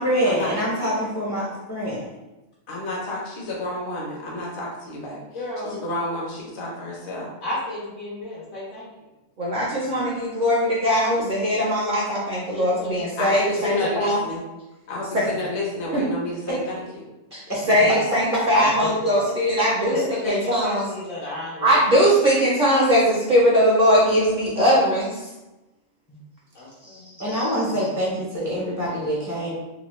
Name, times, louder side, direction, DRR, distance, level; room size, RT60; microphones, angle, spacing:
voice 1, 0.0-2.1 17.5-17.6 18.3-18.4 27.2-29.5, equal, 25° left, -6 dB, 0.3 m, -25 dB
voice 2, 2.7-7.3 13.2-14.4 14.9-17.0, left 1 dB, 50° left, -4 dB, 0.8 m, -30 dB
voice 3, 5.3-5.8 7.4-8.9 12.5-12.9 15.3-15.4 17.8-17.9 19.2-19.3 19.9-21.8 26.5-27.1 27.7-27.9, left 2 dB, 90° left, -7 dB, 1.2 m, -31 dB
voice 4, 9.4-14.2 15.1-15.2 15.9-16.0 17.3-17.4 17.7-20.0 20.3-20.8 21.6-25.3 26.8-27.0 27.3-27.4, equal, 55° right, -5 dB, 0.5 m, -20 dB
3.0 x 2.1 x 3.0 m, 1.0 s
omnidirectional pair, 1.4 m